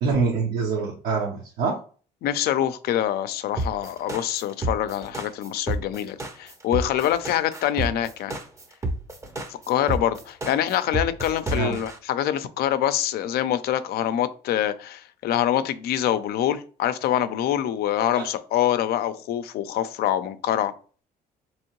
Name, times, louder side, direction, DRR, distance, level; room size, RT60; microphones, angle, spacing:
voice 1, 0.0-1.8 11.5-11.7 18.1-18.3, right 4 dB, 70° right, 0.8 m, -25 dB
voice 2, 2.2-8.3 9.5-20.7, left 11 dB, 70° left, 0.4 m, -25 dB
sound 1, 3.6-12.0, right 1 dB, 15° right, 0.6 m, -29 dB
3.6 x 3.0 x 2.9 m
cardioid pair, 110°, 17 cm